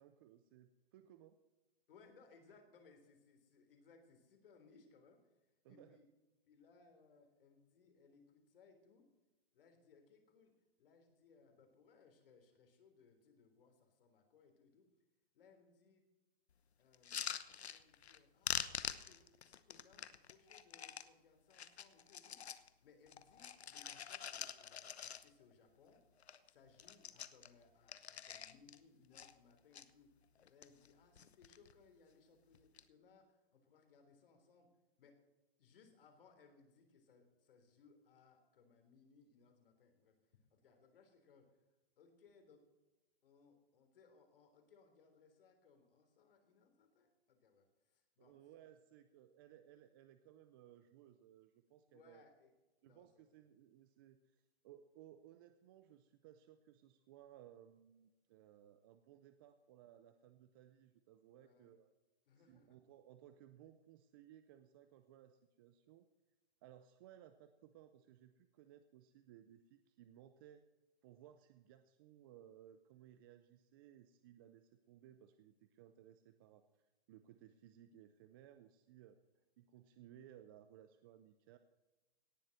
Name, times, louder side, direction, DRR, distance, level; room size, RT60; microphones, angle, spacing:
voice 1, 0.0-1.4 5.6-6.0 48.2-52.2 52.8-61.9 62.4-66.1 66.6-70.7 71.0-79.2 79.6-81.6, right 11 dB, 20° right, 10 dB, 0.5 m, -61 dB
voice 2, 1.9-5.2 5.7-6.0 6.5-9.1 9.5-10.5 10.8-14.9 15.3-16.0 16.8-17.3 17.6-22.4 22.8-26.0 26.5-30.1 30.5-34.7 35.0-35.2 35.6-41.6 42.0-42.6 43.2-48.4 51.9-52.5 52.8-53.2 61.3-61.7 62.3-62.8, left 5 dB, 60° left, 6 dB, 3.7 m, -67 dB
sound 1, 16.9-18.2 18.4-21.1 21.5-22.7 23.1-25.5 25.9-26.0 26.2-26.5 26.7-28.8 29.1-29.8 30.4-30.9 31.2-31.7 32.5-32.8, left 8 dB, 90° left, 1.0 m, -45 dB
18.0 x 7.3 x 6.5 m, 1.1 s
hypercardioid pair, 150°, 31 cm